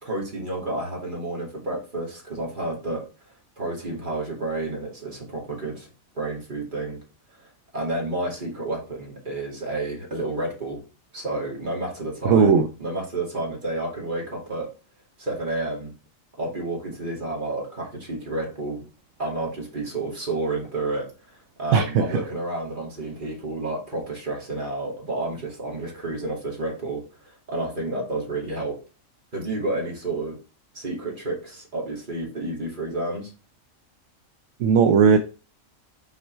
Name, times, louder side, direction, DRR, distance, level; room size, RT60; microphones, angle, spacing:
voice 1, 0.0-3.0 3.6-5.9 6.1-7.0 7.7-10.8 11.1-14.7 15.2-15.9 16.4-18.8 19.2-28.8 29.3-30.4 30.7-33.3, right 2 dB, 35° right, 2.5 m, -30 dB
voice 2, 12.2-12.7 21.7-22.2 34.6-35.2, right 6 dB, 70° right, 1.0 m, -17 dB
6.2 x 4.3 x 4.5 m
omnidirectional pair, 1.4 m